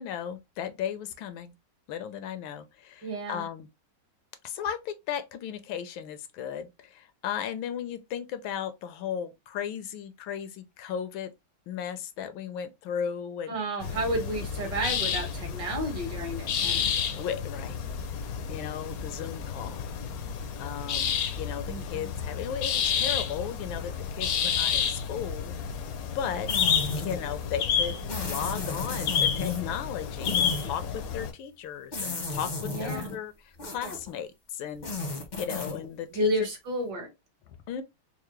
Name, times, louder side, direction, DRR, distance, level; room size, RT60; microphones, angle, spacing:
voice 1, 0.0-1.5 1.9-3.7 4.4-11.3 11.7-13.6 17.2-17.8 18.5-19.8 20.6-25.5 26.1-26.5 27.0-33.3 33.6-36.3 37.7-37.8, left 8 dB, 85° left, 1.4 m, -36 dB
voice 2, 3.0-3.5 13.5-16.9 21.7-22.1 32.6-33.2 36.1-37.1, equal, 60° right, 2.0 m, -31 dB
sound 1, 13.8-31.3, left 7 dB, 70° left, 0.9 m, -30 dB
sound 2, 26.5-27.3 28.1-29.7 30.2-30.7 31.9-33.2 33.6-34.1 34.8-35.9, left 3 dB, 40° left, 0.6 m, -33 dB
4.6 x 2.1 x 3.1 m
omnidirectional pair, 2.1 m